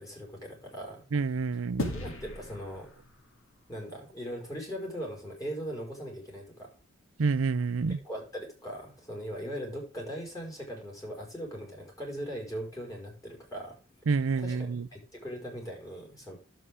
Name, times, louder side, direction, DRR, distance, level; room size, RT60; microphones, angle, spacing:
voice 1, 0.0-1.0 1.9-2.9 3.7-6.7 8.0-13.7 14.4-16.4, equal, 15° left, 4.9 m, -39 dB
voice 2, 1.1-1.9 7.2-8.0 14.1-14.9, right 4 dB, 80° right, 0.5 m, -28 dB
sound 1, 1.8-4.4, left 1 dB, 80° left, 2.3 m, -39 dB
11.0 x 7.7 x 3.6 m
head